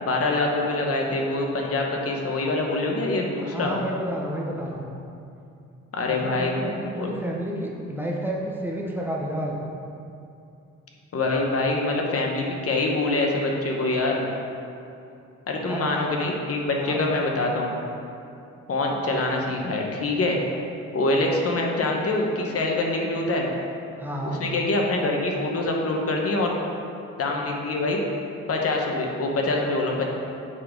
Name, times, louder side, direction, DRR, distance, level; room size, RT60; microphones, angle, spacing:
voice 1, 0.0-3.7 5.9-6.6 6.9-7.1 11.1-14.2 15.5-17.7 18.7-20.4 20.9-23.5 24.3-26.5 27.2-28.0 28.5-30.1, left 2 dB, 50° left, 0 dB, 1.1 m, -25 dB
voice 2, 3.4-4.9 6.0-9.6 15.6-16.1 16.8-17.0 24.0-24.4, equal, 5° right, -3 dB, 0.9 m, -30 dB
7.6 x 4.1 x 5.1 m, 2.6 s
cardioid pair, 90°, 30 cm